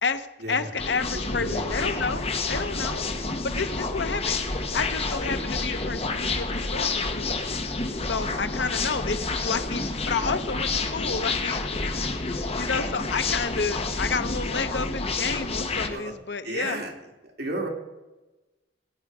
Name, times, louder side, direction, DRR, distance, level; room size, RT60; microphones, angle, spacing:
voice 1, 0.0-3.0 3.4-4.4 4.7-7.5 8.0-16.8, left 4 dB, 85° left, 10 dB, 0.9 m, -30 dB
sound 1, 0.8-15.9, left 3 dB, 35° left, 1.1 m, -29 dB
voice 2, 1.3-1.9 15.9-16.1 16.4-16.9 17.2-17.7, right 1 dB, 65° right, 1 dB, 2.8 m, -33 dB
18.0 x 9.3 x 4.9 m, 1.1 s
head